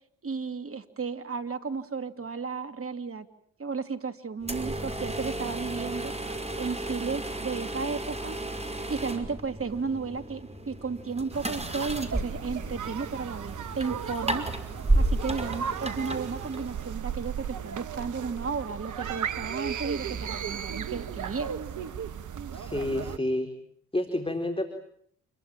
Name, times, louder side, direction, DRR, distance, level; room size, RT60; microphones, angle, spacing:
voice 1, 0.2-3.3 3.6-6.1 6.6-8.4 8.9-14.5 15.0-21.6, right 5 dB, 40° right, 9 dB, 3.0 m, -33 dB
sound 1, 4.4-17.0, right 1 dB, 20° right, 5.7 m, -33 dB
sound 2, 11.3-23.2, right 8 dB, 55° right, 1.6 m, -36 dB
voice 2, 22.5-23.5 23.9-24.6, left 1 dB, 15° left, 5 dB, 4.1 m, -29 dB
28.5 x 23.0 x 9.0 m, 0.65 s
hypercardioid pair, 45°, 35 cm